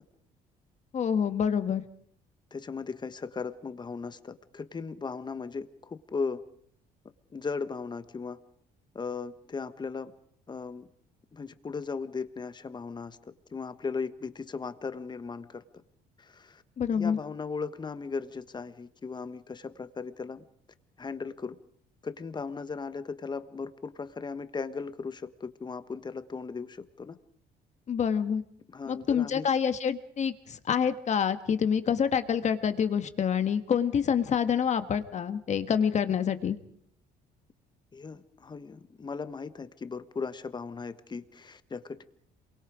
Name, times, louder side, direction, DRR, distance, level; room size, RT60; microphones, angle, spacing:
voice 1, 0.9-1.8 16.8-17.2 27.9-28.4 28.9-36.6, left 7 dB, 45° left, 10 dB, 1.5 m, -27 dB
voice 2, 2.5-6.4 7.3-8.4 8.9-10.1 10.5-10.9 11.3-13.2 13.5-15.6 16.2-16.6 16.9-20.4 21.0-21.6 22.0-27.2 28.7-29.5 37.9-42.0, left 5 dB, 25° left, 11 dB, 1.4 m, -37 dB
27.5 x 23.0 x 5.0 m, 0.64 s
cardioid pair, 110°, 17 cm